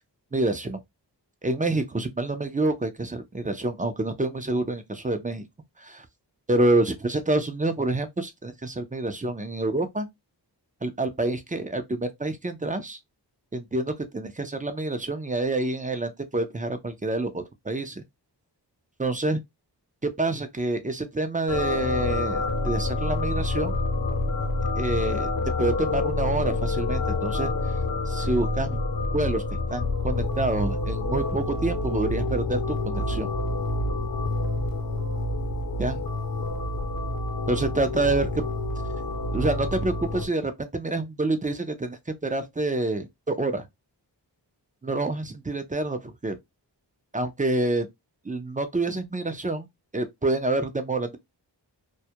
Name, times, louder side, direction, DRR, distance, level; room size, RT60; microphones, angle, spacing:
voice 1, 0.3-0.8 1.4-5.4 5.8-6.1 6.5-10.1 10.8-13.0 13.5-18.0 19.0-19.4 20.0-23.8 24.8-25.3 25.6-27.5 28.1-28.8 29.1-29.4 29.7-33.3 35.8-36.0 37.5-38.5 39.3-43.7 44.8-46.3 47.1-47.9 48.2-49.7 49.9-51.2, right 2 dB, 20° right, 0.4 m, -27 dB
sound 1, 21.5-40.3, left 2 dB, 55° left, 0.8 m, -28 dB
2.2 x 2.1 x 2.7 m
wide cardioid pair, 60°, 43 cm